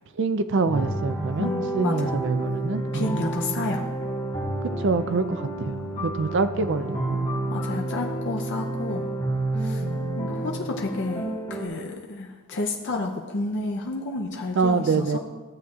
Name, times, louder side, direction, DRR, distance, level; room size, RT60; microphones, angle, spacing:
voice 1, 0.1-3.7 4.6-7.3 9.8-10.7 14.5-15.2, right 4 dB, 55° right, 11 dB, 0.4 m, -26 dB
sound 1, 0.7-11.7, right 1 dB, 25° left, 2.4 m, -29 dB
voice 2, 1.4-2.1 2.9-3.8 7.5-9.0 9.6-9.8 10.2-15.2, left 2 dB, 55° left, 1 dB, 0.6 m, -31 dB
14.0 x 7.7 x 2.4 m, 1.4 s
head